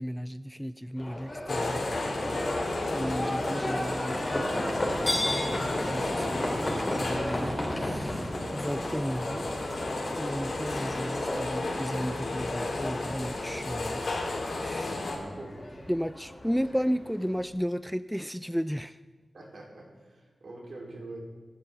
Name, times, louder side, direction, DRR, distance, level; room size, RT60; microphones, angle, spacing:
voice 1, 0.0-2.5 2.9-9.5 10.2-14.0 14.6-15.0 15.9-19.0, equal, ahead, 13 dB, 0.3 m, -34 dB
Livestock farm animals working animals, 1.0-17.4, left 1 dB, 25° left, 3.7 m, -34 dB
sound 1, 1.5-15.2, left 2 dB, 75° left, 2.8 m, -34 dB
voice 2, 15.0-15.6 19.3-21.2, right 2 dB, 70° right, -1 dB, 3.9 m, -44 dB
25.5 x 12.0 x 3.7 m, 1.4 s
wide cardioid pair, 105°, 0 cm